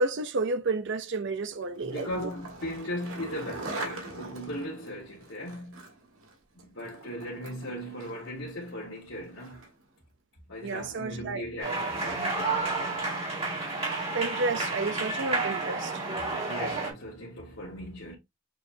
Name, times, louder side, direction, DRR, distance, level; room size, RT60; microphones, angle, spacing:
voice 1, 0.0-2.3 10.6-11.4 14.1-15.9, right 3 dB, 60° right, 0.6 m, -31 dB
Skateboard, 1.5-9.9, right 2 dB, 85° right, 1.6 m, -43 dB
voice 2, 1.8-5.9 6.5-9.7 10.5-13.2 16.4-18.1, equal, 60° left, 1.4 m, -38 dB
sound 1, 11.6-16.9, right 3 dB, 30° right, 1.8 m, -31 dB
6.2 x 2.8 x 2.7 m
head